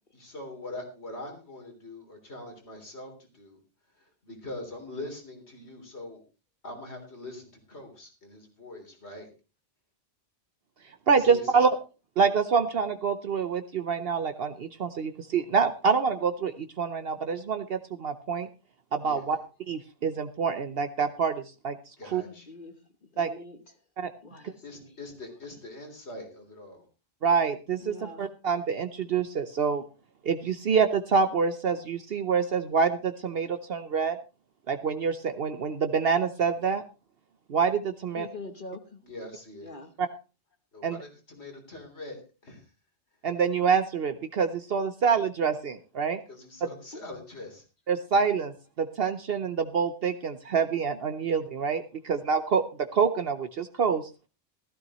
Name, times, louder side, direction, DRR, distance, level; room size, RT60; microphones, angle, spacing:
voice 1, 0.1-3.6 4.0-6.2 6.6-9.3 11.2-11.7 19.0-19.4 22.0-22.5 24.6-26.8 39.0-39.7 40.7-42.6 46.3-47.6, left 2 dB, 70° left, 3 dB, 3.8 m, -43 dB
voice 2, 11.1-11.7 12.2-18.5 18.9-19.4 19.7-21.8 22.1-22.2 23.2-23.3 24.0-24.1 27.2-29.8 30.2-34.2 34.7-36.8 37.5-38.3 40.0-40.1 40.8-41.0 43.2-46.2 46.6-46.7 47.9-52.6 52.9-54.0, right 6 dB, 60° right, 9 dB, 1.0 m, -26 dB
voice 3, 22.2-22.8 23.1-23.6 24.2-25.2 27.8-28.3 38.1-39.0 39.6-39.9 46.9-47.0, left 2 dB, 50° left, 6 dB, 1.3 m, -44 dB
15.0 x 14.0 x 3.0 m, 0.32 s
omnidirectional pair, 1.2 m